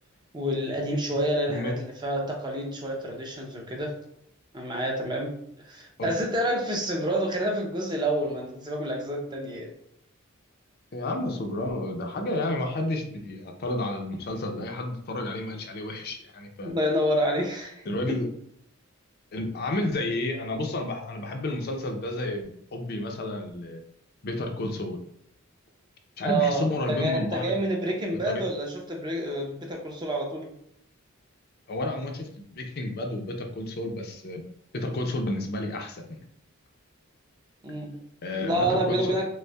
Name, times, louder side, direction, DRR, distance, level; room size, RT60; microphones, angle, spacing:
voice 1, 0.3-3.9 4.5-5.4 5.7-9.7 16.6-18.2 26.2-30.5 37.6-38.0 38.4-39.3, right 1 dB, 20° right, 1 dB, 0.6 m, -28 dB
voice 2, 10.9-16.7 17.9-18.3 19.3-23.8 24.2-25.0 26.2-27.5 28.3-28.4 31.7-34.4 34.7-36.2 38.2-39.3, left 2 dB, 50° left, 4 dB, 0.5 m, -31 dB
5.2 x 2.1 x 2.2 m, 0.71 s
head